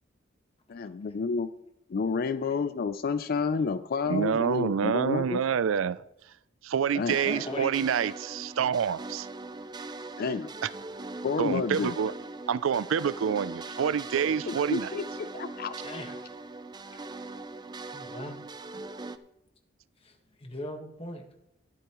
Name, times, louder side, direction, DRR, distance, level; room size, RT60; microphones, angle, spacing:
voice 1, 0.7-1.5 1.9-5.4 6.9-7.2 10.2-10.5 11.2-12.0 14.5-15.0 15.3-15.7, left 5 dB, 50° left, 0.4 m, -30 dB
voice 2, 4.1-6.0 6.6-9.3 11.4-12.1 12.5-14.9, right 7 dB, 85° right, 0.4 m, -27 dB
sound 1, 7.1-19.2, right 3 dB, 20° right, 0.5 m, -41 dB
voice 3, 7.2-7.7 10.5-10.6 15.8-16.1 17.9-18.4 20.0-20.1 20.4-21.2, left 1 dB, 30° left, 1.4 m, -38 dB
20.5 x 8.1 x 3.0 m
head